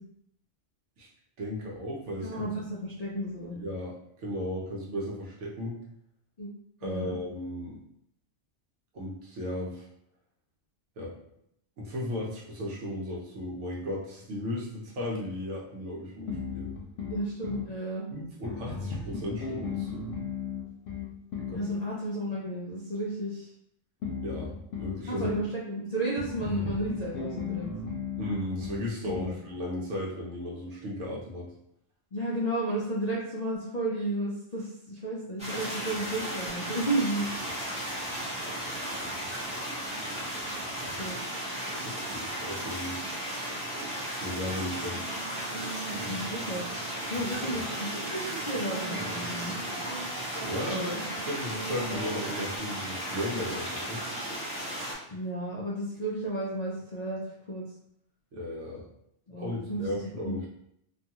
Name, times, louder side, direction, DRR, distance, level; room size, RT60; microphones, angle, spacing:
voice 1, 1.4-2.4 3.5-5.8 6.8-7.8 8.9-9.9 11.0-11.1 11.8-16.7 18.1-20.1 21.5-21.6 24.2-25.3 28.2-31.5 40.8-41.2 41.8-43.0 44.1-45.0 50.5-54.1 58.3-58.9 59.4-60.5, left 1 dB, 75° right, -3 dB, 1.0 m, -35 dB
voice 2, 2.2-3.6 6.4-6.5 6.8-7.2 17.1-18.1 21.5-23.5 25.1-27.7 29.2-29.3 32.1-37.3 41.0-41.2 46.0-46.7 47.0-49.5 50.7-51.0 55.1-57.2 57.5-57.6 59.3-60.3, right 1 dB, 60° left, -5 dB, 0.4 m, -33 dB
sound 1, 16.3-17.7 18.4-21.6 24.0-25.4 26.2-29.4, left 5 dB, 85° left, 1.0 m, -36 dB
sound 2, 35.4-54.9, equal, 5° right, 0.6 m, -35 dB
sound 3, 44.9-52.6, right 3 dB, 35° right, 0.8 m, -41 dB
2.6 x 2.3 x 2.7 m, 0.75 s
omnidirectional pair, 1.2 m